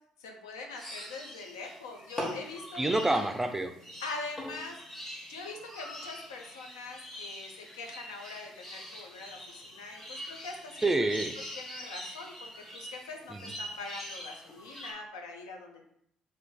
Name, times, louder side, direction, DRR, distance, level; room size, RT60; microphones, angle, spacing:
voice 1, 0.2-3.2 4.0-10.9 11.6-15.9, left 3 dB, 75° left, 2 dB, 0.4 m, -43 dB
sound 1, 0.7-14.9, equal, 20° left, 1.1 m, -43 dB
voice 2, 2.8-3.7 10.8-11.4 13.3-13.5, right 2 dB, 15° right, 7 dB, 0.4 m, -28 dB
2.6 x 2.5 x 3.6 m, 0.73 s
figure-of-eight pair, 50°, 2 cm